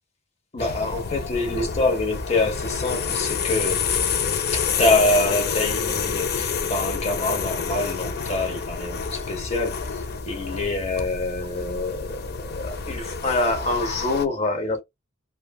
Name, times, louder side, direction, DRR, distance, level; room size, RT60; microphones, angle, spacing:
voice 1, 0.5-4.0 4.5-14.8, left 2 dB, 30° left, 0.8 m, -26 dB
sound 1, 0.6-14.2, left 6 dB, 50° left, 0.4 m, -28 dB
3.0 x 2.2 x 2.3 m
head